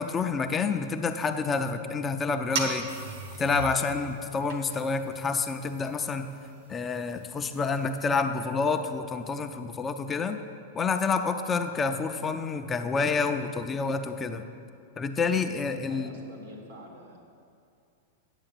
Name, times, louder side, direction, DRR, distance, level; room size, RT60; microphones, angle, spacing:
voice 1, 0.0-2.9 3.4-6.3 6.7-10.4 10.7-14.4 15.0-16.1, left 4 dB, 20° left, 7 dB, 0.5 m, -28 dB
sound 1, 2.5-8.2, right 3 dB, 65° right, 1.5 m, -39 dB
voice 2, 15.9-17.2, equal, 85° right, 0 dB, 2.7 m, -47 dB
8.9 x 7.0 x 7.6 m, 2.4 s
hypercardioid pair, 130°, 0 cm